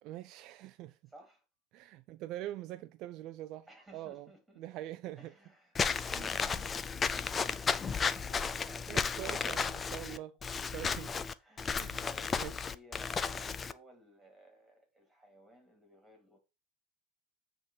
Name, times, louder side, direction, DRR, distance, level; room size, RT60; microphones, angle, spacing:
voice 1, 0.0-1.0 1.7-3.7 3.9-4.3 4.6-5.3 6.1-6.7 8.9-10.3 10.7-11.2 11.7-12.0 12.4-12.7, right 14 dB, 55° right, 0.5 m, -44 dB
voice 2, 1.1-1.4 3.7-4.6 5.2-9.4 9.9-10.2 11.4-16.4, equal, 5° right, 3.4 m, -57 dB
Walk footsteps / Squeak, 5.8-13.7, left 5 dB, 20° left, 0.5 m, -34 dB
8.9 x 3.8 x 5.7 m
supercardioid pair, 135°, 0 cm